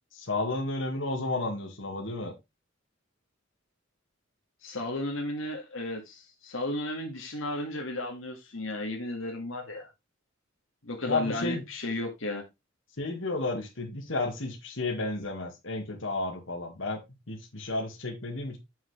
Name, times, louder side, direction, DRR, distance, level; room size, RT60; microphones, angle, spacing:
voice 1, 0.1-2.3 11.1-11.6 13.0-18.6, left 2 dB, 70° left, 2.0 m, -32 dB
voice 2, 4.6-9.9 10.8-12.4, left 1 dB, 85° left, 2.0 m, -34 dB
7.1 x 6.0 x 3.3 m
head